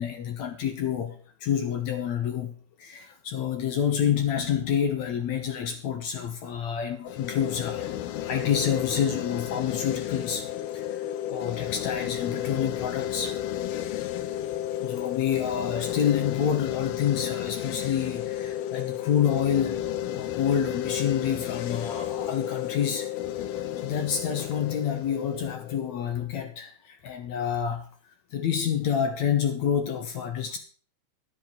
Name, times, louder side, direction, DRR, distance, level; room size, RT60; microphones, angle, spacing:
voice 1, 0.0-10.5 10.7-13.4 14.7-23.1 23.5-27.9 28.3-30.6, left 8 dB, 65° left, 2.0 m, -28 dB
sound 1, 7.1-26.1, left 12 dB, 85° left, 2.9 m, -32 dB
13.0 x 7.7 x 6.0 m
omnidirectional pair, 4.3 m